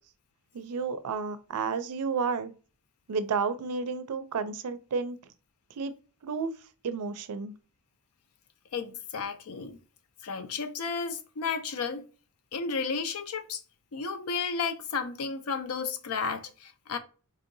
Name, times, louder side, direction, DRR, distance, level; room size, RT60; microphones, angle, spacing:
voice 1, 0.5-2.5 3.1-5.2 5.8-5.9 6.2-6.5 6.8-7.5, right 5 dB, 90° right, 0.4 m, -31 dB
voice 2, 8.7-9.8 10.2-12.0 12.5-13.6 13.9-17.0, left 5 dB, 70° left, 0.5 m, -33 dB
4.2 x 2.7 x 2.6 m
head